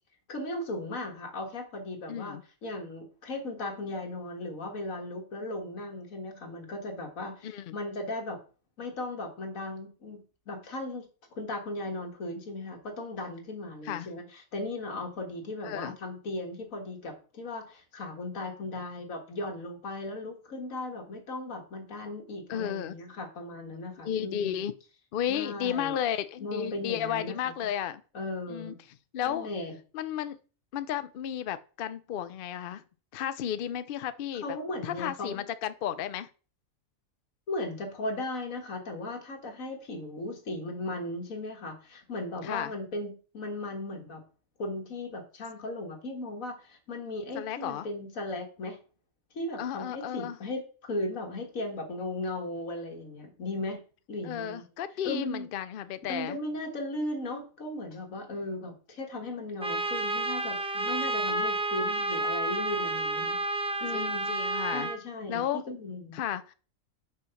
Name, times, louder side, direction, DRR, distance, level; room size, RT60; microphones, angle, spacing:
voice 1, 0.3-8.4 8.8-24.6 25.3-26.0 26.4-27.5 28.1-28.8 29.2-29.7 34.4-35.5 37.5-44.2 44.6-48.8 49.3-53.8 54.1-54.6 55.0-55.5 56.1-63.4 63.8-64.3 64.7-66.2, left 2 dB, 80° left, 3 dB, 2.0 m, -37 dB
voice 2, 2.1-2.4 7.4-7.8 13.8-14.1 15.6-16.0 22.5-22.9 24.0-24.7 25.1-28.0 28.5-28.7 29.1-29.5 29.9-30.4 30.7-32.8 33.1-34.6 34.8-36.3 42.4-42.7 47.3-47.9 49.6-50.4 54.2-56.4 63.9-64.9 65.3-65.6 66.1-66.5, left 10 dB, 60° left, 13 dB, 0.6 m, -33 dB
Trumpet, 59.6-65.0, right 2 dB, 5° right, 0.4 m, -30 dB
6.2 x 4.4 x 5.7 m, 0.37 s
omnidirectional pair, 1.4 m